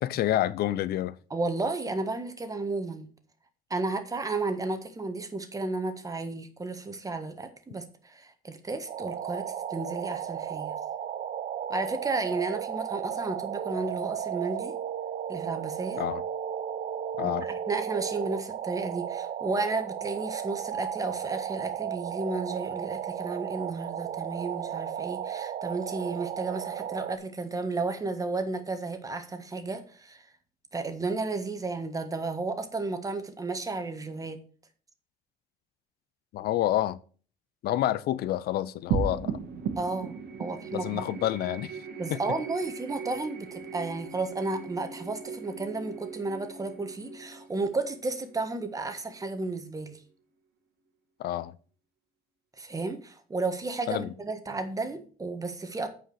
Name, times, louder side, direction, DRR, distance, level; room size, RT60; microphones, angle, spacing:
voice 1, 0.0-1.1 16.0-16.2 17.2-17.5 36.3-37.0 37.6-39.4 40.7-41.8 42.1-42.2 51.2-51.5 53.9-54.1, left 13 dB, 65° left, 0.5 m, -28 dB
voice 2, 1.3-3.1 3.7-10.7 11.7-14.8 15.3-16.1 17.2-30.3 30.7-34.4 39.8-41.2 42.0-50.0 52.6-55.9, right 3 dB, 20° right, 1.5 m, -33 dB
sound 1, 8.9-27.2, right 9 dB, 50° right, 0.7 m, -34 dB
sound 2, 38.9-49.6, right 6 dB, 75° right, 1.6 m, -37 dB
8.8 x 5.0 x 6.5 m
cardioid pair, 110°, 17 cm